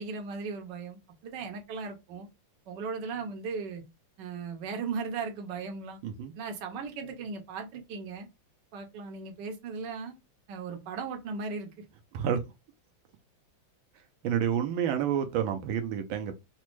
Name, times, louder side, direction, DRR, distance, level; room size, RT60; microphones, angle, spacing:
voice 1, 0.0-2.3 2.7-3.8 4.2-6.0 6.4-8.3 8.7-10.2 10.5-11.7, right 5 dB, 70° right, 1.3 m, -37 dB
voice 2, 6.0-6.3 12.1-12.4 14.2-16.3, right 9 dB, 85° right, 1.4 m, -29 dB
4.1 x 2.2 x 3.0 m
omnidirectional pair, 2.1 m